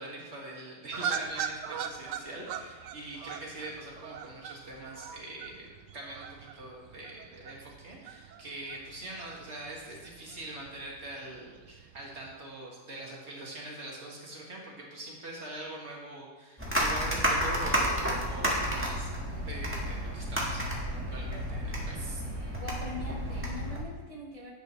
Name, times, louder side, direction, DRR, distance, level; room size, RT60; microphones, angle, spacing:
voice 1, 0.0-22.2, right 1 dB, 45° right, -3 dB, 1.9 m, -43 dB
sound 1, 0.9-12.3, right 7 dB, 90° right, 1.2 m, -41 dB
sound 2, 16.6-23.8, equal, 10° right, 1.3 m, -31 dB
voice 2, 22.0-24.5, left 1 dB, 30° left, -3 dB, 0.8 m, -42 dB
10.5 x 7.9 x 3.1 m, 1.3 s
omnidirectional pair, 1.8 m